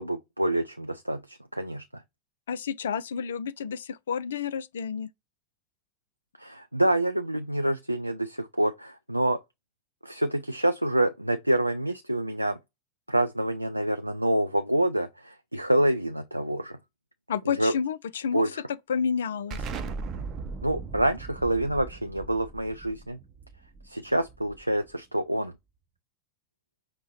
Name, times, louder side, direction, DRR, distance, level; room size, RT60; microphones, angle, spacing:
voice 1, 0.0-1.8 6.4-9.4 10.0-12.6 13.1-16.8 17.6-17.7 18.3-18.6 20.6-23.2 23.8-25.5, right 1 dB, 85° right, 0.3 m, -27 dB
voice 2, 2.5-5.1 17.3-18.4 18.9-19.6, left 7 dB, 65° left, 0.3 m, -30 dB
Explosion, 19.5-24.9, right 4 dB, 30° right, 0.6 m, -38 dB
5.4 x 2.1 x 4.0 m
figure-of-eight pair, 90°, 0 cm